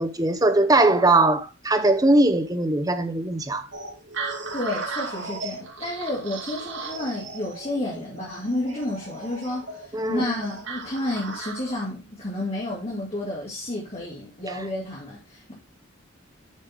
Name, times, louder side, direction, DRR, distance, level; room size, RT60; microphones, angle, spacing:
voice 1, 0.0-3.7 9.9-10.3 14.5-14.6, right 2 dB, 20° right, 0.8 m, -20 dB
sound 1, 3.7-11.9, right 3 dB, 65° right, 2.1 m, -36 dB
voice 2, 4.5-15.5, left 1 dB, 30° left, 2.3 m, -31 dB
7.5 x 5.4 x 4.5 m
head